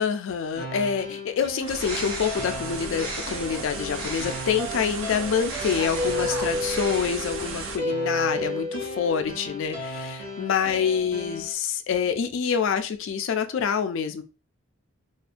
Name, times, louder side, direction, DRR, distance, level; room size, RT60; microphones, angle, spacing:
voice 1, 0.0-14.2, left 7 dB, 60° left, 8 dB, 0.3 m, -26 dB
sound 1, 0.6-11.5, left 1 dB, 25° right, 0.7 m, -33 dB
Bird, 1.5-4.6 5.3-7.5, right 1 dB, 85° right, 0.7 m, -37 dB
sound 2, 1.7-7.8, right 4 dB, 60° right, 0.4 m, -36 dB
2.4 x 2.1 x 2.4 m, 0.31 s
head